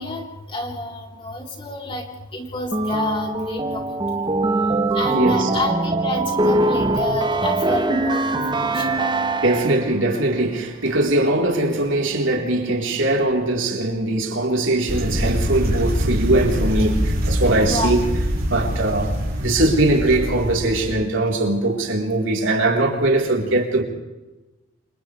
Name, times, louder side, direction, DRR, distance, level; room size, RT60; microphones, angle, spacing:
voice 1, 0.0-2.1 2.3-3.8 4.1-4.4 4.9-9.1 17.7-17.9, left 1 dB, 25° left, 3.9 m, -29 dB
sound 1, 2.7-10.0, right 2 dB, 25° right, 1.0 m, -22 dB
voice 2, 5.1-5.5 9.4-18.1 18.5-23.8, right 2 dB, 75° right, 4.0 m, -21 dB
sound 2, 14.9-20.9, equal, 50° right, 6.0 m, -24 dB
28.0 x 28.0 x 3.4 m
head